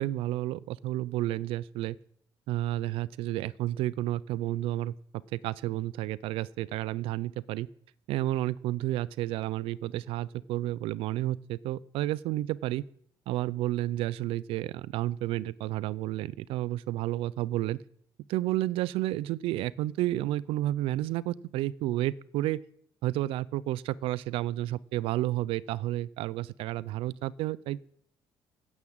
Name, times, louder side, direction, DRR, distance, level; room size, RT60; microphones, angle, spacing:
voice 1, 0.0-2.0 2.5-4.9 5.3-7.7 8.1-12.8 13.3-17.8 18.3-22.6 23.0-27.8, right 15 dB, 80° right, 20 dB, 0.4 m, -31 dB
9.8 x 7.2 x 8.7 m, 0.63 s
cardioid pair, 160°, 9 cm